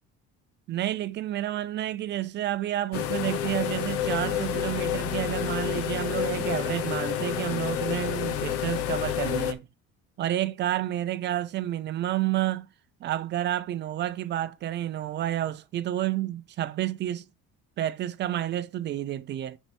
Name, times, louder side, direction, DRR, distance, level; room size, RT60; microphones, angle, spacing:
voice 1, 0.7-9.7 10.2-12.7 13.0-17.2 17.8-19.6, right 13 dB, 35° right, 0.6 m, -30 dB
sound 1, 2.9-9.5, left 10 dB, 50° left, 1.0 m, -29 dB
9.8 x 4.6 x 4.3 m
cardioid pair, 160°, 30 cm